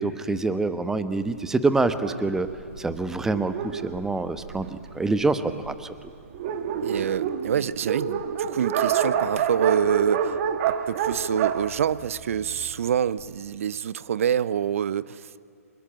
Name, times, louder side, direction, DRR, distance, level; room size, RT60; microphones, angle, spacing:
voice 1, 0.0-2.5 2.8-5.9, right 3 dB, 5° right, 12 dB, 1.0 m, -26 dB
Dog, 2.0-4.9 5.6-5.7 6.0-6.1 6.3-12.7, right 8 dB, 45° right, 2.1 m, -28 dB
voice 2, 6.8-10.4 10.7-15.4, right 8 dB, 60° right, 19 dB, 0.8 m, -26 dB
25.0 x 21.5 x 8.8 m, 2.4 s
hypercardioid pair, 135°, 8 cm